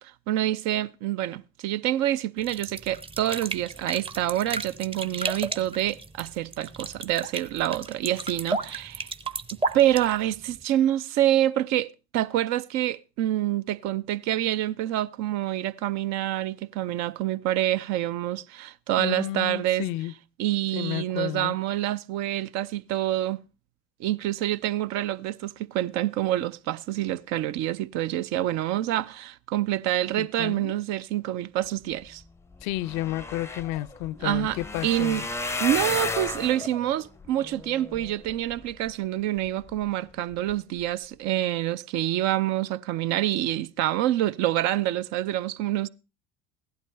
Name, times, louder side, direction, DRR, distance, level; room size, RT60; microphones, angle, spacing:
voice 1, 0.3-9.1 9.7-19.9 20.4-23.4 24.0-32.2 34.2-34.6 34.8-35.2 35.6-45.9, right 13 dB, 55° right, 0.7 m, -27 dB
sound 1, 2.4-10.6, right 3 dB, 15° right, 0.8 m, -34 dB
voice 2, 19.0-20.1 20.7-21.6 30.1-30.7 32.6-35.2, left 16 dB, 65° left, 0.6 m, -32 dB
sound 2, 32.2-32.3 32.5-38.9 39.5-39.9 40.3-40.5 40.8-40.9, left 3 dB, 10° left, 0.6 m, -34 dB
15.5 x 11.5 x 3.3 m
hypercardioid pair, 70°, 32 cm